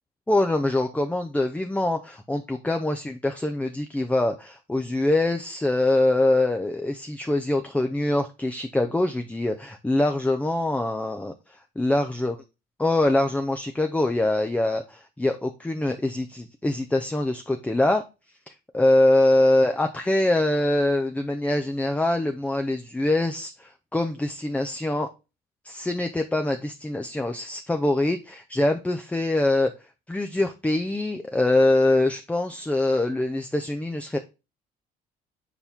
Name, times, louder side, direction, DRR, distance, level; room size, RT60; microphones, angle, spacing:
voice 1, 0.3-11.3 11.8-12.3 12.8-18.0 18.5-25.1 25.6-29.7 30.1-34.2, left 2 dB, 10° left, 5 dB, 0.6 m, -24 dB
7.1 x 4.3 x 3.5 m, 0.28 s
cardioid pair, 110°, 17 cm